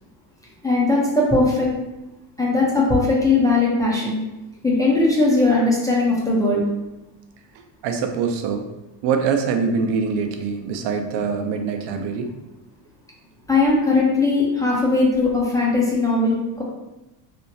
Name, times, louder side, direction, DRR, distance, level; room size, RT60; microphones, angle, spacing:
voice 1, 0.6-1.7 2.4-4.2 4.6-6.6 13.5-16.6, left 3 dB, 10° left, -5 dB, 0.4 m, -19 dB
voice 2, 7.5-8.7 9.0-12.3, right 5 dB, 60° right, 5 dB, 0.5 m, -24 dB
2.9 x 2.1 x 2.6 m, 0.97 s
supercardioid pair, 105°, 47 cm